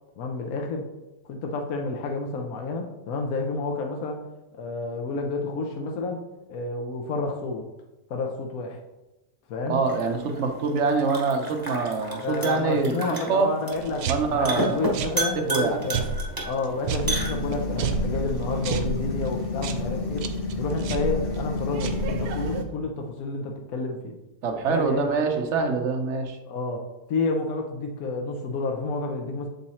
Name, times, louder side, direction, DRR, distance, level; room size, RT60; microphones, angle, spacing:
voice 1, 0.2-0.8 1.2-4.2 4.5-6.2 6.5-7.6 8.1-8.8 9.5-9.8 12.2-16.1 16.4-20.3 20.6-24.1 24.7-25.1 26.5-26.8 27.1-29.5, left 3 dB, 65° left, 2 dB, 1.1 m, -30 dB
voice 2, 9.7-13.5 14.0-14.9 15.5-15.8 24.4-26.4, right 4 dB, 55° right, 5 dB, 0.9 m, -25 dB
sound 1, 9.8-17.8, right 1 dB, 15° right, 0.9 m, -33 dB
sound 2, 13.7-22.6, right 4 dB, 90° right, 1.2 m, -32 dB
sound 3, 17.0-22.6, left 3 dB, 45° left, 0.8 m, -30 dB
7.3 x 3.9 x 4.2 m, 1.0 s
omnidirectional pair, 1.8 m